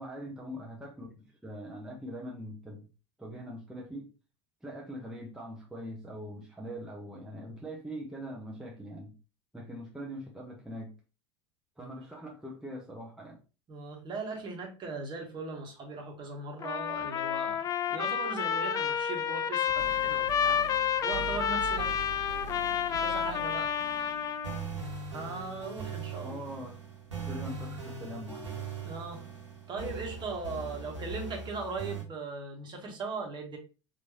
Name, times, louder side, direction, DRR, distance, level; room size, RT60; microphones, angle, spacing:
voice 1, 0.0-2.9 3.2-4.1 4.6-9.2 9.5-10.9 11.8-13.4 26.2-26.8 27.3-28.6, equal, 5° right, -2 dB, 0.8 m, -42 dB
voice 2, 13.7-20.6 21.0-22.0 23.0-23.7 25.1-26.4 28.8-29.2 29.7-33.6, right 3 dB, 30° right, 2 dB, 1.3 m, -39 dB
Trumpet, 16.6-24.6, left 8 dB, 25° left, 0.4 m, -30 dB
sound 1, 19.7-32.0, right 5 dB, 85° right, 1.3 m, -41 dB
4.6 x 2.7 x 2.8 m, 0.33 s
figure-of-eight pair, 75°, 15 cm